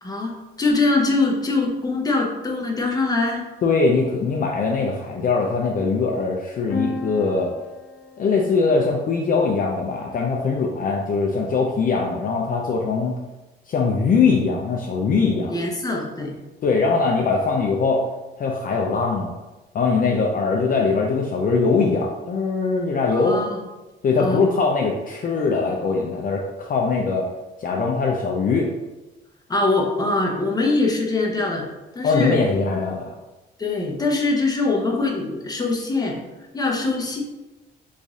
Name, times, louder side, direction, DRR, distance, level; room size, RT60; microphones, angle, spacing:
voice 1, 0.0-3.4 15.5-16.3 23.1-23.6 24.2-24.4 29.5-31.6 31.9-32.4 33.6-36.2 36.5-37.2, left 3 dB, 20° left, -1 dB, 0.8 m, -23 dB
voice 2, 3.6-7.5 8.2-13.2 13.7-15.6 16.6-18.0 18.4-19.4 19.7-23.4 24.0-27.3 27.6-28.7 32.0-33.1, left 4 dB, 45° left, -1 dB, 0.5 m, -21 dB
sound 1, 6.7-10.4, left 2 dB, 90° left, 0.8 m, -35 dB
3.1 x 2.6 x 3.6 m, 1.1 s
cardioid pair, 90°, 20 cm